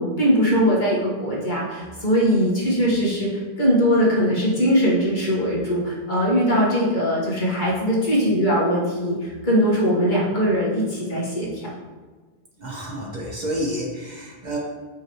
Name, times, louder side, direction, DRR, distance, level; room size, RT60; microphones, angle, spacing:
voice 1, 0.0-11.7, equal, 50° left, -6 dB, 1.7 m, -21 dB
voice 2, 12.6-14.6, equal, 45° right, -2 dB, 1.1 m, -29 dB
5.8 x 5.5 x 3.1 m, 1.4 s
omnidirectional pair, 1.0 m